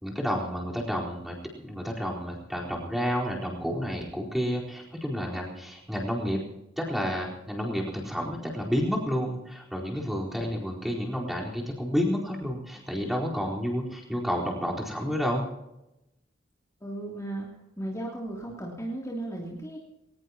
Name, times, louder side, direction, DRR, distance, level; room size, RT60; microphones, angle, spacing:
voice 1, 0.0-1.4 1.6-6.4 6.8-15.5, equal, ahead, -3 dB, 4.3 m, -30 dB
voice 2, 16.8-17.5 17.8-19.8, right 1 dB, 15° left, -4 dB, 3.0 m, -35 dB
21.5 x 19.5 x 2.9 m, 0.90 s
head